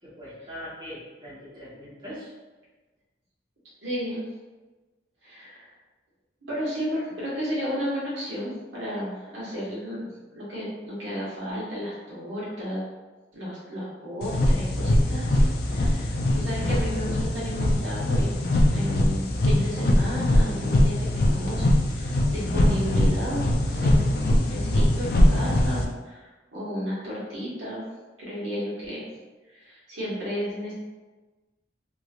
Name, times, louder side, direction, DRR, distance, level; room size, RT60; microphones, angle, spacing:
voice 1, 0.0-2.3, equal, 25° right, -9 dB, 1.1 m, -41 dB
voice 2, 3.8-4.3 5.2-5.7 6.4-12.8 13.3-18.4 18.7-27.8 28.2-29.1 29.5-30.7, equal, 90° right, -8 dB, 1.5 m, -33 dB
sound 1, 14.2-25.8, left 1 dB, 55° left, 0.4 m, -22 dB
3.1 x 3.0 x 2.4 m, 1.2 s
head